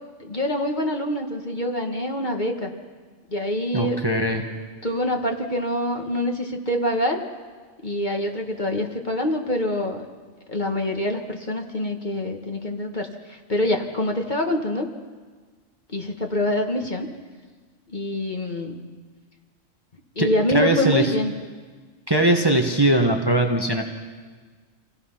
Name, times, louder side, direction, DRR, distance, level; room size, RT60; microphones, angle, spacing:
voice 1, 0.2-2.7 3.3-4.0 4.8-7.2 7.8-10.0 10.5-14.9 15.9-17.1 17.9-18.8 20.1-21.3, left 1 dB, 35° left, 3 dB, 1.7 m, -25 dB
voice 2, 3.7-4.4 20.2-21.0 22.1-23.8, right 1 dB, 20° right, 3 dB, 1.3 m, -20 dB
27.0 x 17.0 x 5.8 m, 1.5 s
omnidirectional pair, 1.3 m